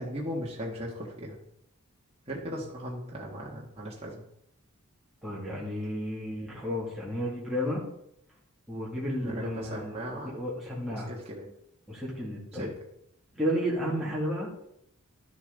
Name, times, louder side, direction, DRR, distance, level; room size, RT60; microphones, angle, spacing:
voice 1, 0.0-1.4 2.3-4.2 9.2-10.4 10.9-11.5 12.5-12.7, equal, 25° right, -4 dB, 1.6 m, -37 dB
voice 2, 5.2-7.8 8.7-11.1 11.9-12.7 13.3-14.5, equal, ahead, -6 dB, 2.5 m, -32 dB
11.5 x 7.2 x 4.0 m, 0.75 s
head